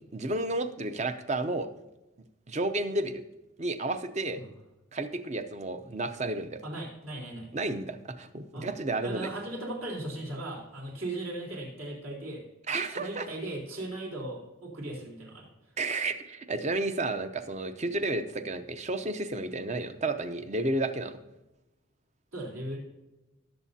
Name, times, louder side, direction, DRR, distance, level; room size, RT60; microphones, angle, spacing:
voice 1, 0.1-1.7 2.5-3.2 3.6-4.4 4.9-6.6 7.5-9.3 12.7-13.3 15.8-21.2, right 2 dB, 30° right, 9 dB, 0.7 m, -31 dB
voice 2, 6.6-7.5 8.5-8.7 9.0-12.4 12.9-15.5 22.3-22.8, right 1 dB, 70° right, -2 dB, 3.8 m, -37 dB
18.5 x 7.4 x 2.8 m, 1.0 s
head